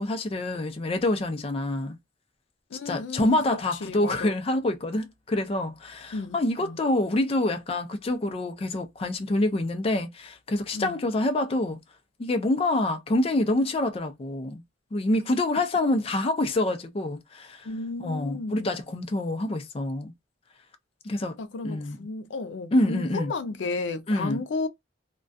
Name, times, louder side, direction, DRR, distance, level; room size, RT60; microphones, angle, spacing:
voice 1, 0.0-2.0 2.9-11.8 12.2-14.6 14.9-17.7 18.0-20.1 21.0-21.4 21.6-22.0 22.7-23.3 24.1-24.4, left 1 dB, 35° left, 0.4 m, -26 dB
voice 2, 2.7-3.4 3.8-4.4 6.1-6.4 6.6-6.8 10.7-11.0 17.6-18.7 21.4-24.7, left 3 dB, 90° left, 0.4 m, -33 dB
2.2 x 2.2 x 2.5 m
head